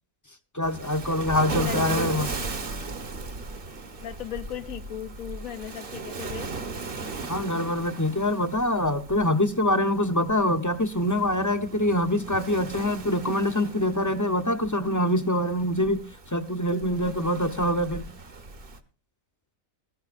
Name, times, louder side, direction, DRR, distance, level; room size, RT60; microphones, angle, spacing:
voice 1, 0.5-2.3 7.3-16.0 16.3-18.1, left 1 dB, 15° left, 0.7 m, -25 dB
Waves surf, 0.6-18.8, right 3 dB, 45° right, 1.3 m, -37 dB
voice 2, 1.6-2.5 4.0-6.5, left 10 dB, 90° left, 1.4 m, -37 dB
20.5 x 14.0 x 2.5 m
omnidirectional pair, 1.4 m